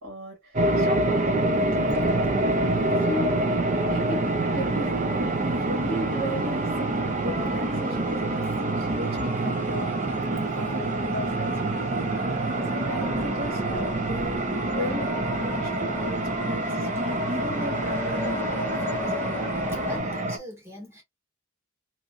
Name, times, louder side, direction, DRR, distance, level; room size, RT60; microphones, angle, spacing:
voice 1, 0.0-2.2 2.7-3.4 3.9-4.2 4.5-4.9 5.4-8.5 8.8-10.1 10.5-19.4, equal, 65° right, 1.9 m, -36 dB
sound 1, 0.5-20.4, right 2 dB, 35° right, 0.5 m, -26 dB
sound 2, 1.9-20.0, left 2 dB, 10° left, 1.0 m, -37 dB
voice 2, 19.7-21.0, left 1 dB, 10° right, 1.4 m, -41 dB
3.0 x 2.7 x 2.5 m
head